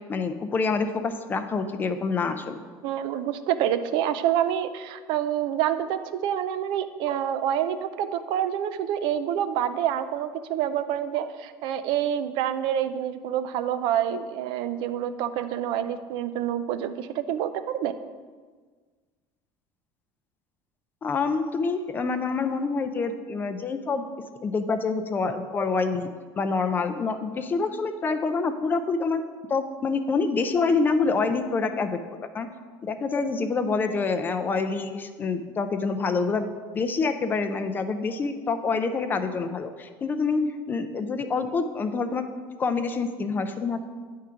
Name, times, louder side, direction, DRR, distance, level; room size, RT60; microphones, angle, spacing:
voice 1, 0.1-2.6 21.0-24.1 24.4-26.1 26.4-29.2 29.5-32.0 32.3-32.5 32.8-40.4 40.7-42.2 42.6-43.8, left 4 dB, 20° left, 8 dB, 0.4 m, -26 dB
voice 2, 2.8-17.9, right 10 dB, 60° right, 11 dB, 0.4 m, -27 dB
9.0 x 3.7 x 5.6 m, 1.5 s
cardioid pair, 160°, 9 cm